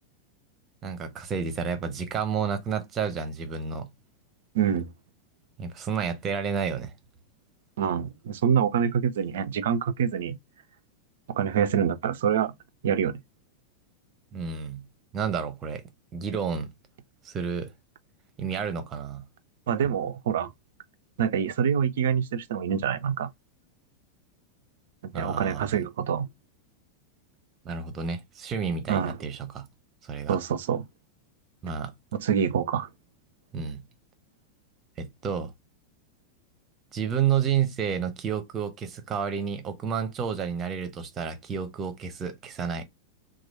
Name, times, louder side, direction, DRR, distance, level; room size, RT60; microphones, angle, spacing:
voice 1, 0.8-3.9 5.6-6.9 14.3-14.8 15.1-15.8 16.1-16.7 17.2-17.7 18.4-19.2 25.1-25.9 27.6-29.7 30.0-30.4 31.6-31.9 33.5-33.8 35.0-35.5 36.9-42.8, right 7 dB, 25° right, 0.7 m, -30 dB
voice 2, 4.5-4.9 7.8-10.4 11.3-12.5 12.8-13.2 19.7-20.5 21.2-23.3 25.0-26.3 28.9-29.2 30.3-30.8 32.1-32.9, right 8 dB, 60° right, 0.4 m, -26 dB
3.0 x 2.3 x 4.1 m
figure-of-eight pair, 90°, 0 cm